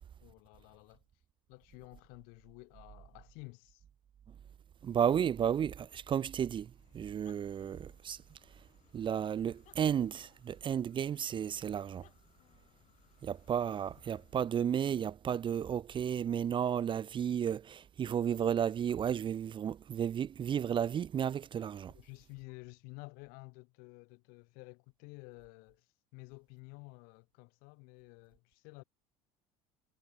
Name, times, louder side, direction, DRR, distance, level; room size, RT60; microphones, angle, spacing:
voice 1, 0.2-1.0 1.5-3.8 21.9-28.8, left 31 dB, 70° left, 4.7 m, -52 dB
voice 2, 4.8-8.2 8.9-12.0 13.2-21.9, right 8 dB, 30° right, 0.6 m, -33 dB
sound 1, 6.6-14.5, left 13 dB, 50° left, 3.7 m, -67 dB
supercardioid pair, 100°, 16 cm